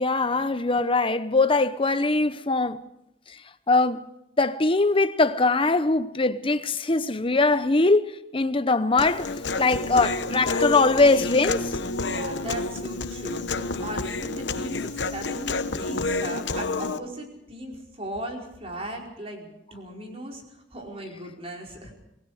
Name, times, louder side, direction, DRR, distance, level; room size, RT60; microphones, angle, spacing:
voice 1, 0.0-2.8 3.7-4.1 4.4-9.3 9.6-11.7, left 3 dB, 30° left, 0.9 m, -22 dB
Human voice, 9.0-17.0, left 3 dB, 70° left, 1.0 m, -29 dB
voice 2, 12.0-21.9, right 1 dB, 35° right, 4.9 m, -38 dB
27.0 x 19.5 x 4.9 m
head